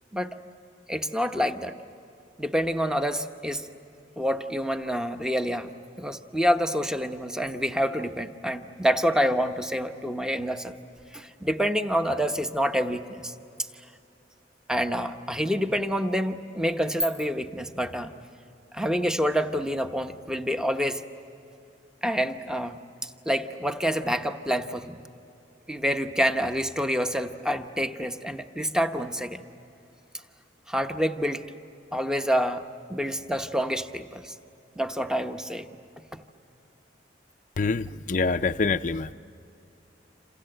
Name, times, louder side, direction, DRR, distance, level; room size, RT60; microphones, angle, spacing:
voice 1, 0.9-1.7 2.4-3.7 4.2-5.7 6.0-10.7 11.1-13.3 14.7-18.1 18.7-21.0 22.0-25.0 25.7-29.4 30.7-31.5 31.9-34.3 34.8-35.7, equal, 5° right, 7 dB, 0.9 m, -27 dB
voice 2, 37.6-39.1, left 4 dB, 45° left, 9 dB, 0.5 m, -26 dB
28.0 x 27.5 x 7.8 m, 2.7 s
head